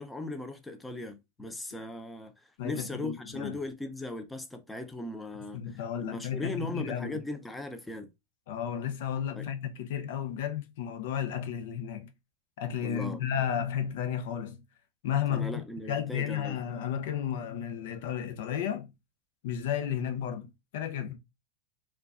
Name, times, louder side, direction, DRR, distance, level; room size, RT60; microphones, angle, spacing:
voice 1, 0.0-8.1 9.4-9.5 12.8-13.2 13.5-13.6 15.3-16.6, left 1 dB, 10° left, 0.5 m, -38 dB
voice 2, 2.6-3.6 5.5-7.2 8.5-12.1 12.6-14.6 15.0-15.6 15.9-18.9 19.4-21.2, left 9 dB, 70° left, 0.7 m, -33 dB
4.4 x 2.3 x 2.5 m
hypercardioid pair, 115°, 0 cm